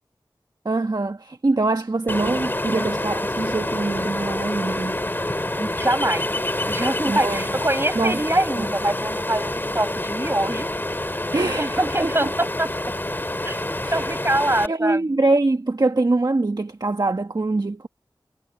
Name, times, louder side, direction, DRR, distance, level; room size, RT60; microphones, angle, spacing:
voice 1, 0.6-5.0 7.1-7.4 7.9-8.2 8.6-8.7 11.3-12.1 13.8-14.1 14.7-17.9, right 2 dB, 55° right, 1.4 m, -23 dB
Ocean, 2.1-14.7, left 1 dB, 25° left, 2.0 m, -27 dB
voice 2, 5.6-6.3 6.7-10.7 11.5-12.7 13.4-13.6 13.9-15.2, right 1 dB, 30° right, 7.8 m, -24 dB
wide cardioid pair, 50°, 9 cm